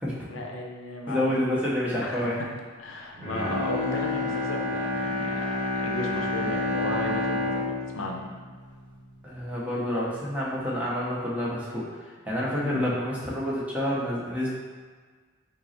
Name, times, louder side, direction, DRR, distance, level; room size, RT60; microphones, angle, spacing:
voice 1, 0.3-1.3 2.0-2.5 2.8-8.2 12.6-12.9, left 2 dB, 85° left, 0 dB, 0.6 m, -35 dB
voice 2, 1.1-2.4 9.2-14.5, left 1 dB, 5° right, -7 dB, 0.8 m, -28 dB
Bowed string instrument, 3.1-9.4 9.8-9.9, left 2 dB, 25° right, 1.2 m, -29 dB
5.2 x 2.0 x 4.3 m, 1.5 s
head